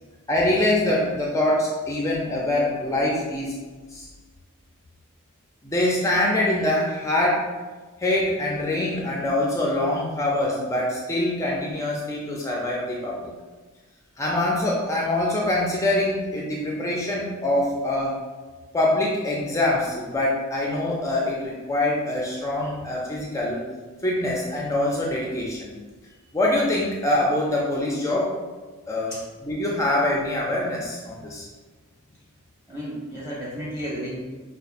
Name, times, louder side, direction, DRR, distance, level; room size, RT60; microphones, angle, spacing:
voice 1, 0.3-3.6 3.9-4.1 5.6-7.4 8.0-13.3 14.2-18.1 18.7-23.6 24.0-25.7 26.3-28.3 28.9-29.1 29.5-31.4, left 1 dB, 15° left, -3 dB, 0.4 m, -24 dB
voice 2, 32.7-34.4, equal, 15° right, -9 dB, 1.1 m, -33 dB
5.3 x 2.3 x 2.5 m, 1.3 s
head